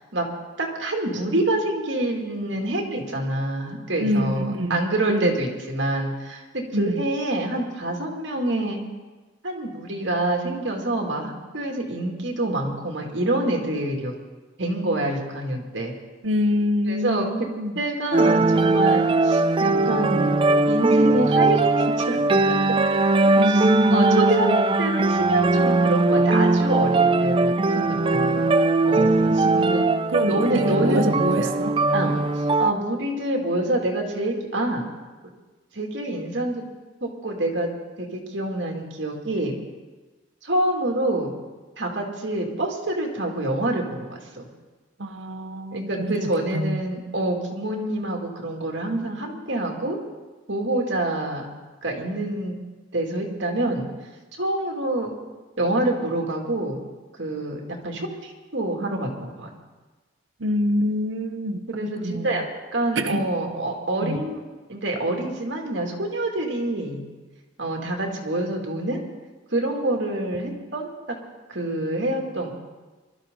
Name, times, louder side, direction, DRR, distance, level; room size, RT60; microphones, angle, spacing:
voice 1, 0.6-8.8 9.4-14.1 14.6-15.9 16.9-17.5 17.8-20.3 20.7-22.8 23.2-23.6 23.9-24.5 24.8-28.4 28.8-29.9 30.3-31.5 31.9-32.2 32.6-34.9 35.7-36.6 37.0-37.7 38.0-39.5 40.4-41.3 41.8-44.1 44.3-44.4 45.7-50.0 50.5-51.5 51.8-52.6 52.9-53.9 54.4-55.1 55.6-56.8 57.2-59.5 61.7-62.4 62.7-64.4 64.7-67.0 67.6-69.0 69.5-71.2 71.5-72.5, right 1 dB, 65° right, 1 dB, 2.6 m, -26 dB
voice 2, 4.0-4.8 5.1-5.4 6.7-7.0 16.2-17.8 23.3-24.6 29.3-31.8 45.0-46.8 60.4-62.4 62.9-63.2 64.0-64.2, equal, 80° right, 8 dB, 1.0 m, -26 dB
sound 1, 18.1-32.7, right 3 dB, 25° right, 0.4 m, -20 dB
22.5 x 13.0 x 3.9 m, 1.3 s
head